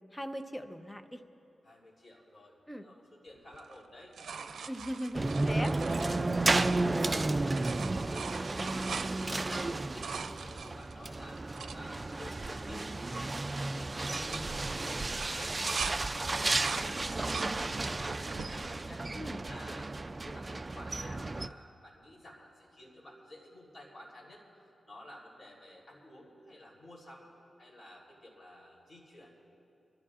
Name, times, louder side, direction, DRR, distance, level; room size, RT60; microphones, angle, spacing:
voice 1, 0.1-1.2 2.7-2.9 4.7-5.8 19.1-19.4, equal, 10° left, 7 dB, 0.8 m, -39 dB
voice 2, 1.6-4.1 5.3-11.4 11.7-27.3 27.6-29.4, left 1 dB, 45° left, -3 dB, 3.5 m, -53 dB
sound 1, 3.5-7.2 7.4-11.8 12.4-12.5 12.7-13.1 13.4-13.7 14.1-16.0 16.3-17.5 18.0-18.5 19.2-19.9 21.5-21.6, right 6 dB, 90° right, 0.5 m, -43 dB
sound 2, 5.1-21.5, right 2 dB, 30° right, 0.3 m, -33 dB
27.0 x 13.5 x 2.5 m, 2.8 s
wide cardioid pair, 90°, 0 cm